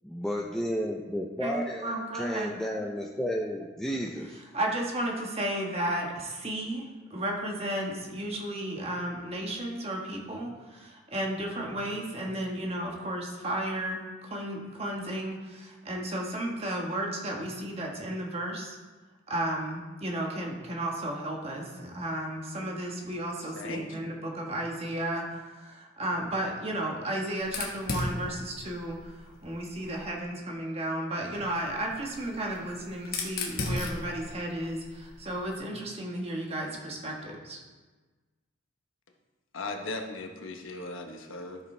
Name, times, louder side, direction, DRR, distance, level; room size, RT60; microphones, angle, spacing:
voice 1, 0.0-4.4, equal, 5° left, -2 dB, 0.5 m, -32 dB
voice 2, 1.4-2.5 4.5-18.8 19.3-37.6, right 1 dB, 30° right, -1 dB, 1.4 m, -33 dB
voice 3, 23.6-24.1 39.5-41.6, left 2 dB, 80° left, 3 dB, 1.1 m, -38 dB
Fire, 27.4-30.2 31.3-35.5, left 2 dB, 50° left, 1.3 m, -37 dB
12.5 x 6.8 x 3.3 m, 1.3 s
head